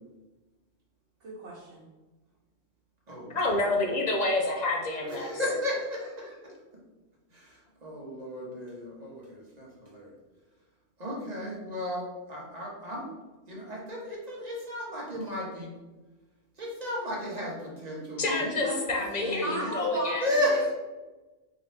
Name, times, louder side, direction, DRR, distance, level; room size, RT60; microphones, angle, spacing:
voice 1, 1.2-1.8 18.6-18.8 19.4-20.6, right 1 dB, 80° right, -7 dB, 1.2 m, -36 dB
voice 2, 3.3-5.3 18.2-20.3, left 2 dB, 50° left, 0 dB, 0.6 m, -28 dB
voice 3, 5.1-6.4 7.3-7.5 7.8-10.1 11.0-12.0 12.3-13.0 13.5-15.7 16.6-19.5 20.2-20.7, left 1 dB, 40° right, -3 dB, 0.9 m, -33 dB
3.8 x 2.8 x 3.3 m, 1.1 s
omnidirectional pair, 1.2 m